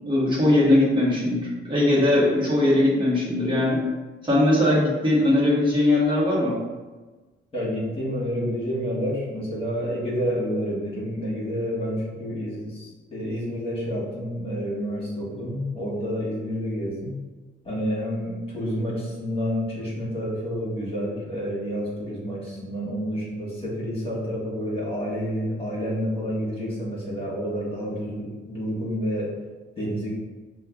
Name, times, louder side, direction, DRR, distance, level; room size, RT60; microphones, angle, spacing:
voice 1, 0.1-3.8 4.2-6.6, left 1 dB, 25° right, -7 dB, 1.3 m, -20 dB
voice 2, 7.5-17.1 17.6-29.3 29.8-30.1, equal, 30° left, -6 dB, 1.4 m, -29 dB
5.3 x 2.3 x 2.3 m, 1.3 s
cardioid pair, 90°, 20 cm